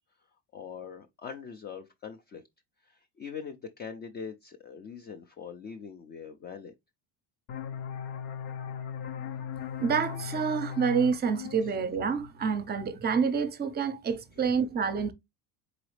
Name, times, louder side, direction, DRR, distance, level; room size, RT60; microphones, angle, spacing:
voice 1, 0.5-2.4 2.8-6.7 11.6-11.8 14.4-14.5, left 6 dB, 25° left, 0.4 m, -42 dB
sound 1, 7.5-12.9, left 8 dB, 85° left, 0.8 m, -38 dB
voice 2, 9.8-15.1, right 6 dB, 25° right, 0.6 m, -28 dB
3.9 x 3.9 x 3.1 m
cardioid pair, 130°, 41 cm